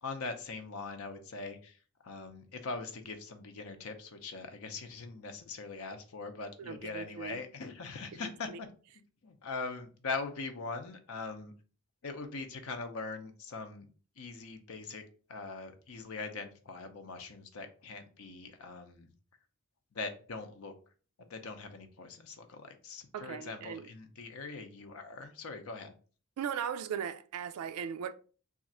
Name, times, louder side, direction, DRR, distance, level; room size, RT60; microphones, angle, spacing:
voice 1, 0.0-8.7 9.2-11.5 12.0-13.9 14.2-15.0 15.3-19.1 19.9-20.7 21.2-25.9, left 4 dB, 70° left, 0.6 m, -42 dB
voice 2, 6.6-7.4 8.1-8.2 8.5-8.6 23.1-23.9 26.4-28.1, right 8 dB, 85° right, 0.3 m, -38 dB
3.5 x 2.5 x 4.1 m
head